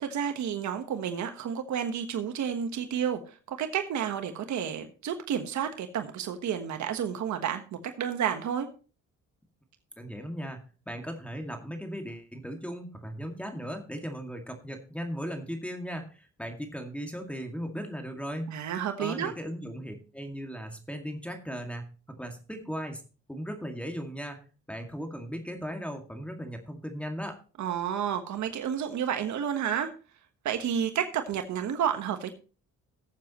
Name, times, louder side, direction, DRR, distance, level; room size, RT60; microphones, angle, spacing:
voice 1, 0.0-8.7 18.5-19.3 27.6-29.9 30.4-32.3, right 8 dB, 70° right, 6 dB, 1.3 m, -31 dB
voice 2, 10.0-10.6 10.9-18.5 19.0-21.8 22.2-23.0 23.3-24.4 24.7-27.4, equal, 5° left, 3 dB, 2.1 m, -37 dB
17.5 x 7.3 x 3.0 m, 0.36 s
cardioid pair, 90°, 30 cm